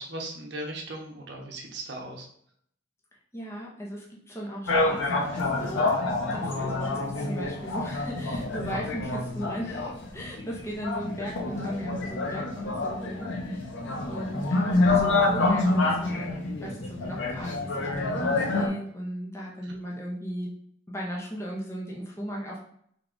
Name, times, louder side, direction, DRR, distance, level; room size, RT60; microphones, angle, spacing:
voice 1, 0.0-2.3 19.6-19.7, right 1 dB, 55° right, 1 dB, 0.7 m, -38 dB
voice 2, 3.3-5.8 6.2-13.7 14.1-20.5 20.9-22.6, equal, 15° left, -3 dB, 0.5 m, -37 dB
sound 1, 4.7-18.7, left 2 dB, 70° left, 0.6 m, -27 dB
3.4 x 2.2 x 3.7 m, 0.66 s
head